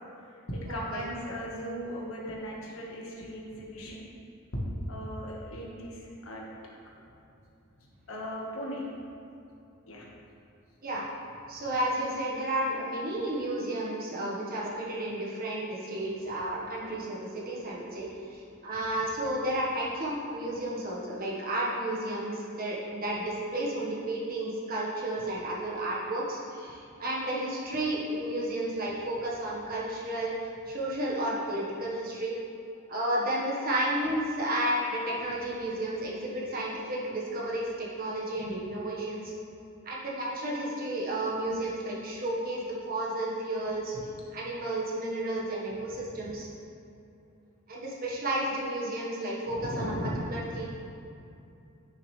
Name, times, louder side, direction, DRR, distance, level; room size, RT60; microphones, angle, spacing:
voice 1, 0.5-4.0 4.9-6.4 8.1-8.8 9.9-10.1 43.9-44.0 46.1-46.2 49.5-50.7, equal, 70° left, -3 dB, 1.5 m, -37 dB
voice 2, 11.5-30.3 30.7-32.3 32.9-39.3 39.8-44.0 44.3-46.5 47.7-49.9 50.3-50.7, right 1 dB, 45° right, -5 dB, 1.5 m, -32 dB
9.5 x 6.8 x 3.3 m, 2.7 s
head